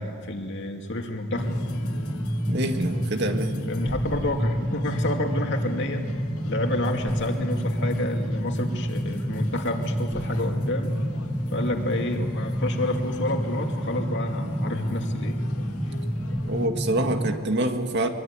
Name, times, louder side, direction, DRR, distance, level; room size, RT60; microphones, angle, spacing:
voice 1, 0.0-1.5 3.7-6.0 6.4-11.0 11.5-15.3, left 1 dB, 55° left, 3 dB, 2.5 m, -29 dB
sound 1, 1.3-17.4, equal, 5° right, 1.1 m, -29 dB
sound 2, 1.4-16.7, left 2 dB, 85° left, 2.2 m, -44 dB
voice 2, 2.5-3.7 16.5-18.1, right 1 dB, 50° right, 6 dB, 2.0 m, -26 dB
25.0 x 23.0 x 9.7 m, 2.2 s
head